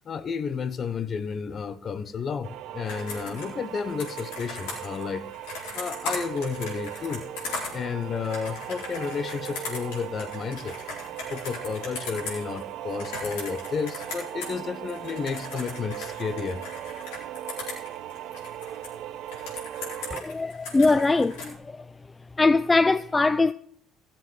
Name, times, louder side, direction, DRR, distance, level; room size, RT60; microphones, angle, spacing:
voice 1, 0.0-5.3 5.7-7.3 7.7-10.8 11.3-16.6, left 6 dB, 45° left, 1.0 m, -32 dB
sound 1, 2.4-20.2, right 12 dB, 65° right, 0.7 m, -38 dB
Computer keyboard, 2.9-14.6 14.9-18.9 19.3-21.5, left 3 dB, 80° left, 4.3 m, -38 dB
voice 2, 20.1-21.8 22.4-23.5, left 3 dB, 20° left, 0.3 m, -22 dB
15.0 x 7.3 x 5.6 m
hypercardioid pair, 70°, 0 cm